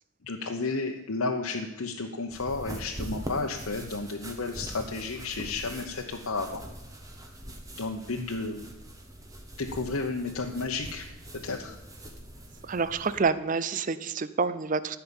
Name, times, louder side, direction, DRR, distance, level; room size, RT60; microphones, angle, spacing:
voice 1, 0.2-6.6 7.8-8.6 9.6-11.8, left 3 dB, 75° left, 1 dB, 0.9 m, -32 dB
sound 1, 2.3-13.2, equal, 15° right, 1.4 m, -43 dB
voice 2, 12.7-15.0, right 4 dB, 35° right, 14 dB, 0.5 m, -28 dB
14.0 x 5.8 x 8.8 m, 1.0 s
head